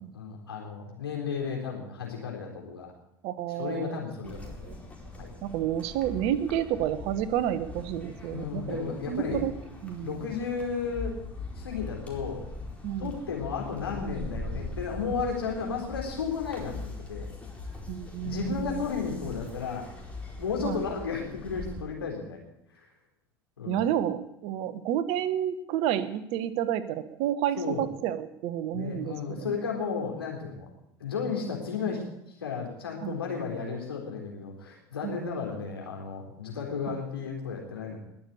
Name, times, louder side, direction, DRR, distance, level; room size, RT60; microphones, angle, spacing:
voice 1, 0.0-2.9 3.5-4.6 5.2-5.3 8.3-9.4 10.0-11.1 11.6-12.4 13.0-17.3 18.2-19.8 20.4-22.4 22.8-22.9 23.6-23.8 27.6-27.9 28.7-30.7 31.0-32.0 32.4-38.0, left 5 dB, 80° left, 0 dB, 3.8 m, -33 dB
voice 2, 3.2-4.0 4.6-4.8 5.4-9.5 9.8-10.2 12.8-13.1 17.9-18.9 20.6-20.8 23.7-29.6 33.0-33.2 35.0-35.4 36.9-37.0, right 11 dB, 55° right, 14 dB, 1.1 m, -30 dB
sound 1, 4.2-21.8, left 2 dB, 10° left, 4.5 m, -41 dB
20.5 x 7.2 x 8.3 m, 0.81 s
figure-of-eight pair, 65°, 13 cm